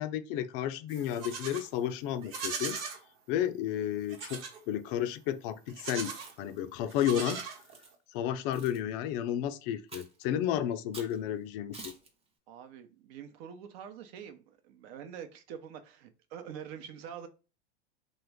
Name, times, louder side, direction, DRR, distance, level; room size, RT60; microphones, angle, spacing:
voice 1, 0.0-2.8 3.3-6.1 6.4-7.4 8.1-11.9, left 10 dB, 50° left, 0.4 m, -32 dB
Livestock farm animals working animals, 0.9-1.7 2.2-3.0 4.1-4.6 5.7-6.3 6.9-7.9, right 5 dB, 40° right, 1.0 m, -39 dB
Chewing mastication, 6.1-6.6 7.2-7.9 8.5-8.8 9.9-10.2 10.9-11.2 11.7-12.1, right 3 dB, 15° right, 0.7 m, -48 dB
voice 2, 12.5-17.3, right 8 dB, 60° right, 0.7 m, -45 dB
3.0 x 2.3 x 3.4 m
hypercardioid pair, 100°, 34 cm